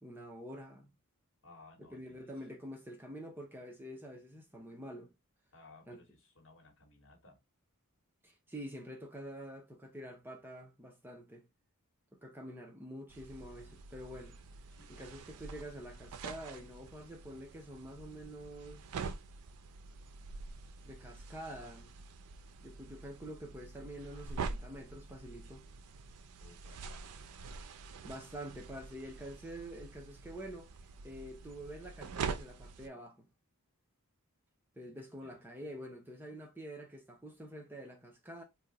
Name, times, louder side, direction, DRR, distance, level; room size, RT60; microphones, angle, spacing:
voice 1, 0.0-0.9 1.8-5.1 5.9-6.0 8.2-11.5 12.1-14.4 14.9-18.9 20.9-21.9 22.6-25.6 28.0-30.7 31.0-33.3 34.8-38.4, equal, 10° right, 0.5 m, -47 dB
voice 2, 1.4-2.3 5.5-7.4 14.7-15.1 26.4-27.1 34.8-35.4, left 3 dB, 60° left, 1.1 m, -59 dB
sound 1, 13.1-32.9, right 4 dB, 90° right, 0.4 m, -46 dB
2.9 x 2.2 x 3.8 m
head